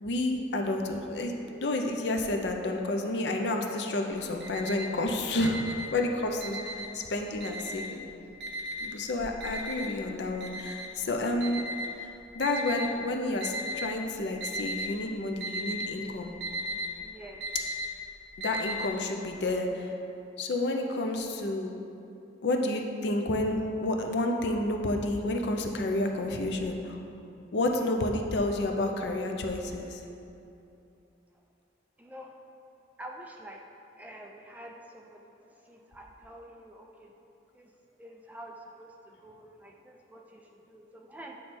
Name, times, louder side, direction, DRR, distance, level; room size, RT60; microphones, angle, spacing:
voice 1, 0.0-1.3 1.6-8.0 8.8-11.6 12.0-16.4 18.4-19.9 20.4-21.7 22.4-27.0 27.5-30.0, left 2 dB, 70° left, 3 dB, 0.5 m, -30 dB
Alarm, 4.1-5.0 5.4-7.0 7.4-8.1 8.4-12.9 13.4-14.0 14.3-14.9 15.2-18.9, right 1 dB, 60° right, 1.0 m, -36 dB
voice 2, 17.0-17.4 32.0-32.3 33.0-33.6 34.0-35.3 35.7-37.1 37.5-37.7 38.0-41.4, right 1 dB, 10° right, 0 dB, 0.3 m, -47 dB
8.4 x 3.2 x 4.3 m, 2.8 s
head